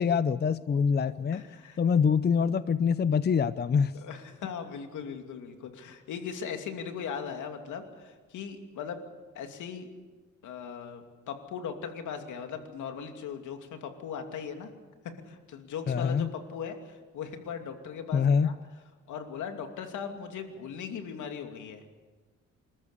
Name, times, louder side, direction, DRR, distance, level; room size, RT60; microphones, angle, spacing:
voice 1, 0.0-1.4 1.8-3.9 15.9-16.3 18.1-18.5, left 6 dB, 35° left, 15 dB, 0.6 m, -25 dB
voice 2, 1.3-1.8 3.9-9.0 9.3-9.9 10.4-14.7 15.3-18.5 19.1-21.8, left 7 dB, 80° left, 5 dB, 2.7 m, -39 dB
27.0 x 14.0 x 8.5 m, 1.3 s
cardioid pair, 90°, 30 cm